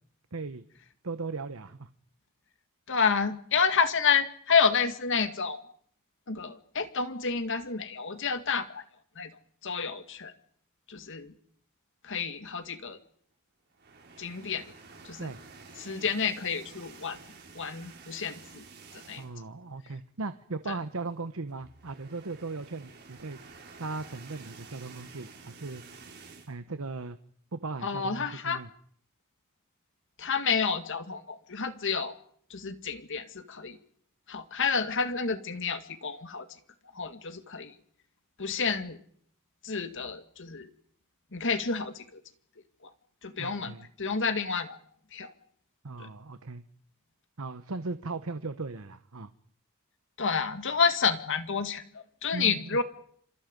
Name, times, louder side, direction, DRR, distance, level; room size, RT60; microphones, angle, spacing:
voice 1, 0.3-0.6 1.0-1.9 15.2-15.4 19.1-23.4 23.8-25.8 26.5-27.2 27.5-28.7 43.4-43.9 45.8-46.6 47.4-49.3 52.3-52.6, right 3 dB, 70° right, 11 dB, 1.1 m, -37 dB
voice 2, 2.9-5.6 6.3-8.8 9.2-9.3 9.6-10.3 10.9-11.3 12.0-13.0 14.2-14.6 15.0-15.3 15.8-17.2 17.5-18.6 19.1-19.2 20.7-20.8 27.8-28.6 30.2-32.1 32.5-33.8 34.3-36.5 36.9-37.7 38.4-39.0 39.6-40.7 41.3-42.2 43.2-44.8 45.1-45.3 46.0-46.1 50.2-52.8, left 5 dB, 60° left, 9 dB, 1.9 m, -29 dB
sound 1, 13.7-19.5 19.9-20.1 20.3-20.4 21.5-26.5, right 4 dB, 50° right, 4.7 m, -50 dB
28.0 x 27.0 x 5.3 m, 0.63 s
head